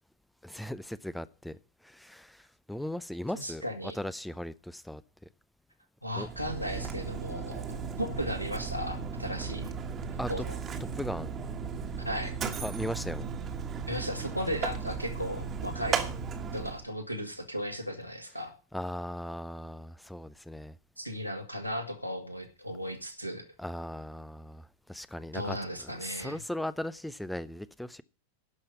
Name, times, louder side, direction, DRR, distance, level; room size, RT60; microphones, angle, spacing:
voice 1, 0.4-1.6 1.8-3.6 3.9-5.0 6.1-6.3 10.2-10.5 11.0-11.3 12.6-13.3 18.7-20.7 23.6-28.0, left 1 dB, 5° left, 0.5 m, -38 dB
voice 2, 3.3-4.0 6.0-9.7 10.3-10.6 12.0-12.3 13.9-16.1 16.5-18.5 21.0-23.5 25.3-26.4, equal, 90° right, 1.9 m, -36 dB
Mechanisms, 6.1-16.9, right 6 dB, 25° right, 1.5 m, -36 dB
11.5 x 5.6 x 8.9 m
figure-of-eight pair, 90°, 0 cm